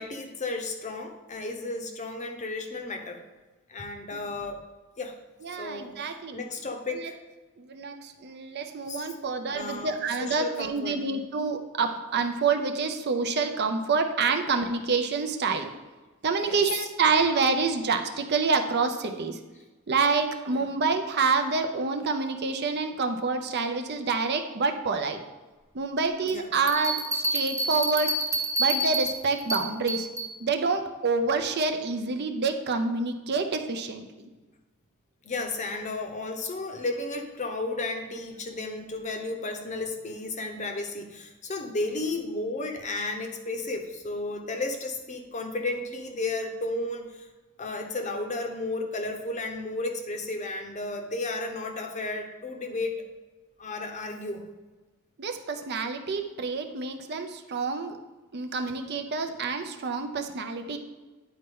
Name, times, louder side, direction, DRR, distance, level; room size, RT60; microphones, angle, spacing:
voice 1, 0.0-3.2 3.7-4.6 5.0-5.2 5.6-7.2 8.9-9.1 9.5-11.0 16.4-16.6 20.5-20.7 26.3-26.5 35.2-47.3 47.6-53.0 53.6-54.5, left 2 dB, 35° left, 4 dB, 0.7 m, -33 dB
voice 2, 5.4-6.4 6.9-7.1 7.6-15.7 16.2-19.4 19.9-25.2 25.7-28.1 28.6-30.1 30.4-34.3 55.2-58.0 58.3-60.8, right 4 dB, 50° right, 6 dB, 0.6 m, -27 dB
sound 1, 26.7-30.3, right 2 dB, 15° right, 0.8 m, -28 dB
9.6 x 4.2 x 3.6 m, 1.2 s
head